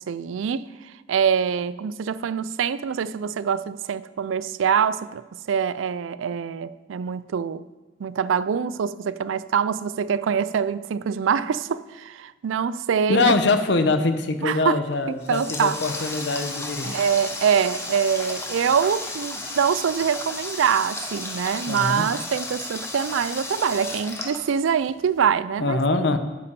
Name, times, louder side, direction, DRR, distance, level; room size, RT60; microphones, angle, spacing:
voice 1, 0.0-7.6 8.0-13.3 14.4-14.8 15.3-15.8 16.8-26.1, right 7 dB, 80° right, 0.4 m, -24 dB
voice 2, 13.1-17.0 21.7-22.1 25.6-26.2, left 3 dB, 60° left, 0.8 m, -23 dB
Water tap faucet, 14.9-25.1, left 2 dB, 15° left, 0.9 m, -34 dB
9.4 x 5.6 x 6.8 m
head